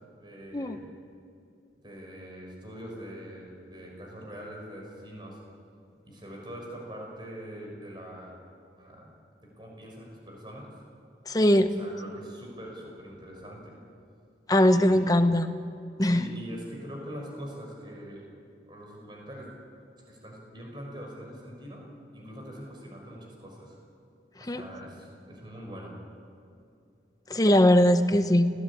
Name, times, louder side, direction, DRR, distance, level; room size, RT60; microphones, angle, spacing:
voice 1, 0.1-0.9 1.8-5.4 6.0-8.3 8.8-9.1 9.4-10.7 11.7-13.8 14.5-15.1 16.0-18.3 18.7-19.5 20.0-21.8 22.1-23.8 24.4-26.0, equal, 25° right, -1 dB, 5.8 m, -43 dB
voice 2, 11.3-11.7 14.5-15.5 16.0-16.2 24.5-24.6 27.3-28.5, left 1 dB, 20° left, 9 dB, 0.9 m, -20 dB
29.0 x 17.5 x 8.6 m, 2.5 s
head